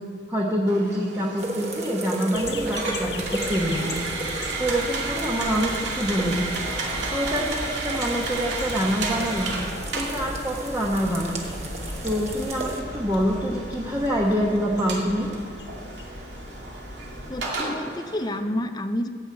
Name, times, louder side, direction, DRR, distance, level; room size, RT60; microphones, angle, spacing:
voice 1, 0.3-4.1 4.6-6.9 7.1-9.5 9.9-11.5 12.0-15.3, equal, 15° right, -3 dB, 1.1 m, -26 dB
sound 1, 0.7-18.4, right 3 dB, 80° right, 2.3 m, -33 dB
sound 2, 1.4-12.8, right 2 dB, 40° right, 1.3 m, -35 dB
sound 3, 2.3-17.5, left 1 dB, 70° left, 1.3 m, -37 dB
voice 2, 17.3-19.1, left 1 dB, 25° left, 9 dB, 0.5 m, -29 dB
12.0 x 6.3 x 8.4 m, 2.3 s
head